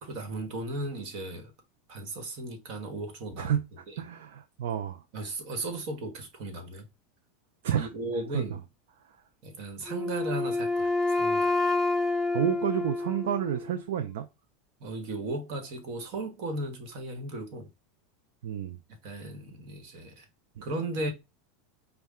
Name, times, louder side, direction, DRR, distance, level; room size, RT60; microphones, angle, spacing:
voice 1, 0.0-1.5 1.9-3.6 3.9-4.0 5.1-6.9 7.7-8.6 9.4-11.5 14.8-17.7 19.0-20.3 20.6-21.1, right 2 dB, 55° right, 1.4 m, -36 dB
voice 2, 4.0-5.0 7.6-7.9 8.3-8.4 9.0-9.2 12.3-14.3 18.4-18.8 20.6-20.7, right 10 dB, 75° right, 0.5 m, -30 dB
Wind instrument woodwind instrument, 9.9-13.8, left 2 dB, 10° right, 0.7 m, -28 dB
5.2 x 2.3 x 3.6 m
supercardioid pair, 110°, 0 cm